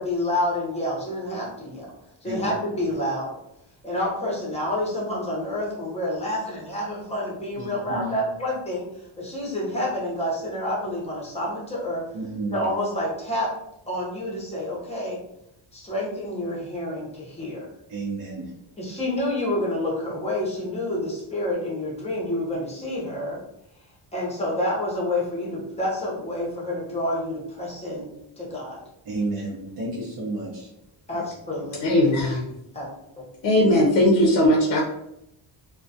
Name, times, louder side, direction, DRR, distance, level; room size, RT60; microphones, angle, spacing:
voice 1, 0.0-1.9 2.2-3.3 3.8-8.9 9.2-12.0 12.5-13.5 13.9-15.2 15.7-17.7 18.8-23.4 24.1-28.1 28.4-28.8 31.1-31.8 32.7-32.9 33.2-33.3, left 1 dB, 15° left, -4 dB, 0.7 m, -28 dB
voice 2, 2.2-2.8 7.6-8.2 12.1-12.6 17.9-18.5 29.0-30.7 31.1-31.2, right 2 dB, 55° right, -6 dB, 0.7 m, -31 dB
voice 3, 31.8-32.5 33.4-34.8, left 1 dB, 55° left, -1 dB, 0.6 m, -19 dB
2.2 x 2.2 x 2.6 m, 0.81 s
cardioid pair, 145°, 46 cm